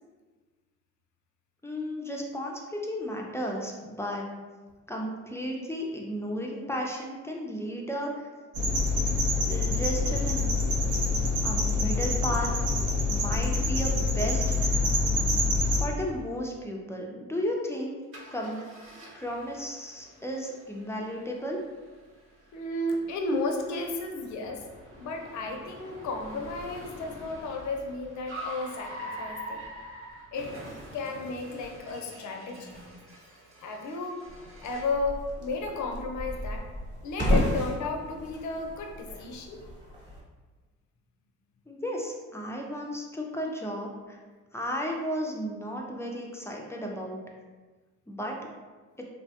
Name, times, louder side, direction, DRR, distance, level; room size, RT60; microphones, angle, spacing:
voice 1, 1.6-4.2 4.9-8.3 9.5-10.5 11.4-12.5 13.1-14.8 15.8-18.0 18.3-18.6 19.1-21.6 39.1-39.2 41.7-44.2 44.5-47.2 48.1-48.4, equal, 10° left, -1 dB, 0.4 m, -34 dB
sound 1, 8.5-15.8, left 2 dB, 75° right, 0.6 m, -26 dB
Car, 18.1-35.0, right 1 dB, 45° right, 0.8 m, -46 dB
voice 2, 22.5-24.7 25.0-29.7 30.3-30.5 30.9-32.9 33.6-34.2 34.6-36.6 37.0-39.6, left 2 dB, 70° left, 3 dB, 0.6 m, -33 dB
sound 2, 34.3-40.2, equal, 15° right, 1.0 m, -33 dB
3.1 x 2.1 x 2.7 m, 1.3 s
cardioid pair, 90°, 30 cm